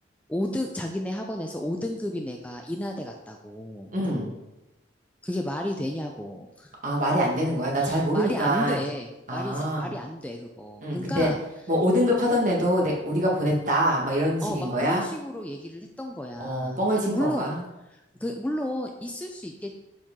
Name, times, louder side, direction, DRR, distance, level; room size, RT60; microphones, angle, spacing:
voice 1, 0.3-3.9 5.2-6.7 7.8-11.4 14.4-17.5 17.9-19.7, left 1 dB, 5° left, 2 dB, 0.4 m, -32 dB
voice 2, 3.9-4.3 6.8-8.8 9.3-9.9 10.8-11.3 11.7-15.1 16.4-17.6, equal, 40° right, -2 dB, 1.6 m, -24 dB
7.3 x 4.5 x 3.7 m, 0.94 s
head